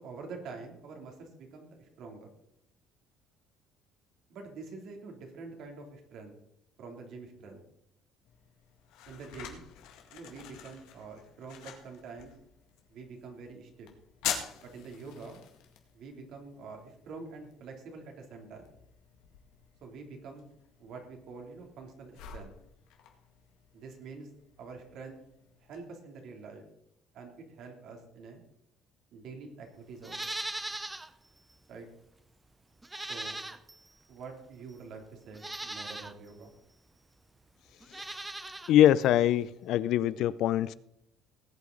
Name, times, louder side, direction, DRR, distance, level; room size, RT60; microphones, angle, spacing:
voice 1, 0.0-2.3 4.3-6.3 6.8-7.6 9.1-9.6 10.1-12.3 12.9-13.9 14.6-15.4 15.9-18.7 19.8-20.4 20.8-22.5 23.7-24.3 24.6-25.2 25.6-26.6 27.1-28.4 29.1-30.3 31.7-31.9 33.1-33.4 34.1-36.5, right 4 dB, 60° right, 2 dB, 3.0 m, -46 dB
sound 1, 8.2-25.8, left 9 dB, 90° left, 2.0 m, -46 dB
Livestock farm animals working animals, 30.0-31.1 31.5-31.6 32.8-33.9 34.7-34.8 35.3-36.1 37.8-38.7 39.0-39.1, right 2 dB, 10° right, 0.6 m, -39 dB
voice 2, 38.7-40.7, left 12 dB, 65° left, 18 dB, 0.5 m, -23 dB
18.5 x 8.4 x 3.9 m, 0.77 s
cardioid pair, 140°, 0 cm